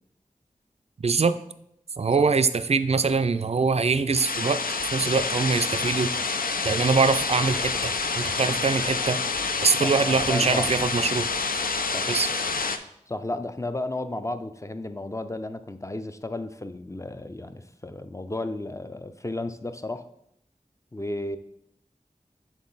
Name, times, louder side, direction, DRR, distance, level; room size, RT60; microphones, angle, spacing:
voice 1, 1.0-1.3 2.0-4.6 4.9-6.1 6.6-9.2 9.6-11.3 12.1-12.3, right 4 dB, 45° right, 12 dB, 0.3 m, -23 dB
sound 1, 4.1-12.8, left 4 dB, 90° left, 0.4 m, -28 dB
voice 2, 9.8-10.7 11.9-12.1 13.1-20.1 20.9-21.4, left 2 dB, 20° left, 10 dB, 0.4 m, -33 dB
7.4 x 3.8 x 4.0 m, 0.76 s
wide cardioid pair, 40°, 14 cm